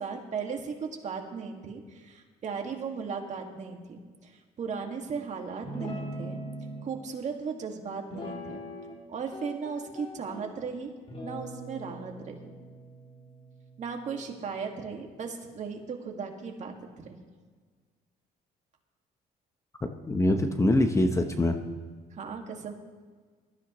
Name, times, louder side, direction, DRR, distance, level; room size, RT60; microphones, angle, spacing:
voice 1, 0.0-4.3 4.6-6.4 6.8-8.6 9.1-10.9 11.2-12.5 13.8-17.2 22.1-22.7, right 5 dB, 45° right, 2 dB, 2.0 m, -36 dB
Guitar, 5.6-6.8 8.1-9.0 9.3-10.5 11.1-14.5, equal, 35° left, 3.2 m, -41 dB
voice 2, 20.1-21.6, left 1 dB, 15° left, 6 dB, 0.9 m, -23 dB
21.0 x 13.5 x 3.1 m, 1.5 s
cardioid pair, 110°, 17 cm